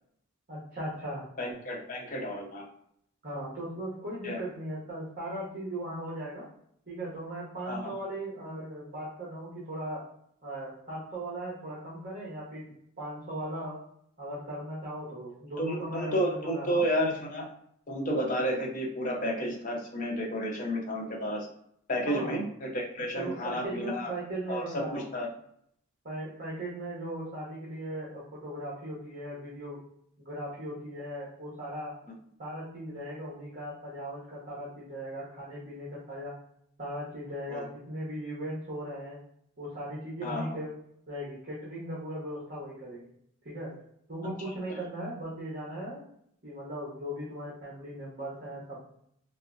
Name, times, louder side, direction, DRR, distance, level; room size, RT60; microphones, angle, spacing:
voice 1, 0.5-1.3 3.2-6.5 6.9-10.0 10.4-13.8 14.2-16.8 22.1-22.4 23.2-25.1 26.0-29.8 30.2-31.9 32.4-36.3 36.8-39.2 39.6-40.7 41.1-43.1 43.4-43.7 44.1-46.0 46.4-48.8, right 1 dB, 40° right, -7 dB, 0.8 m, -38 dB
voice 2, 1.4-2.7 4.2-4.4 7.7-7.9 15.6-17.5 17.9-21.5 21.9-24.1 24.5-25.3 37.5-37.7 40.2-40.6 44.7-44.8, equal, 35° left, -1 dB, 0.6 m, -31 dB
3.4 x 2.0 x 2.4 m, 0.71 s
head